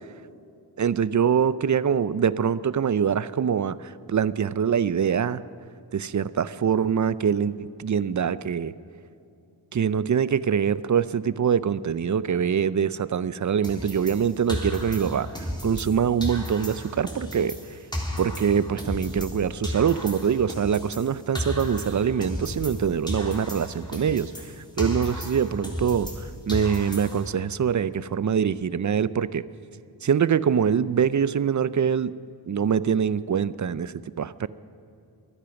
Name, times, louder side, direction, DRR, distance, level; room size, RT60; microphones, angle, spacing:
voice 1, 0.8-5.4 5.9-8.7 9.7-15.3 15.6-17.6 18.2-24.3 24.8-26.1 26.5-29.4 30.0-32.1 32.5-34.5, right 7 dB, 40° right, 17 dB, 0.5 m, -24 dB
sound 1, 13.6-15.9 16.2-19.4 19.6-22.8 23.1-26.2 26.5-27.3, left 1 dB, 10° left, 3.4 m, -33 dB
23.0 x 10.0 x 6.0 m, 2.6 s
cardioid pair, 50°, 44 cm